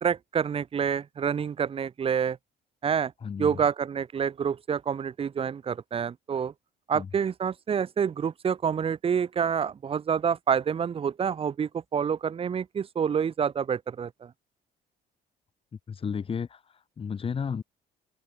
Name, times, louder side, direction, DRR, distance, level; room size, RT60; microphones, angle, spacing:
voice 1, 0.0-2.4 2.8-3.1 3.4-6.5 6.9-14.3, right 7 dB, 35° right, 1.0 m, -28 dB
voice 2, 3.2-3.5 6.9-7.1 15.9-17.6, left 6 dB, 35° left, 1.8 m, -33 dB
open air
cardioid pair, 110°, 17 cm